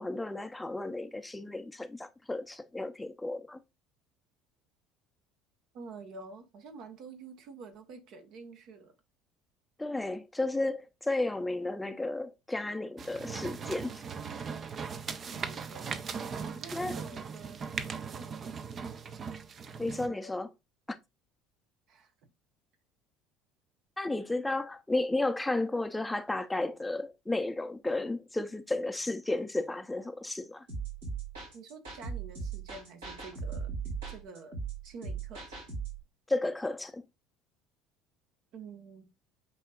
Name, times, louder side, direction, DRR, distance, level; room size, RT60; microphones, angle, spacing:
voice 1, 0.0-3.6 9.8-14.0 16.7-17.0 19.8-20.5 24.0-30.7 36.3-37.0, left 2 dB, 10° left, 0.5 m, -33 dB
voice 2, 5.7-8.9 15.3-17.6 18.2-18.3 19.8-20.4 21.9-22.1 31.5-33.7 34.1-34.6 34.8-35.6 38.5-39.1, right 4 dB, 60° right, 1.0 m, -48 dB
sound 1, 13.0-20.1, right 6 dB, 40° right, 0.5 m, -39 dB
sound 2, 30.7-36.0, right 5 dB, 80° right, 2.6 m, -38 dB
8.3 x 2.8 x 2.3 m
hypercardioid pair, 65°, 0 cm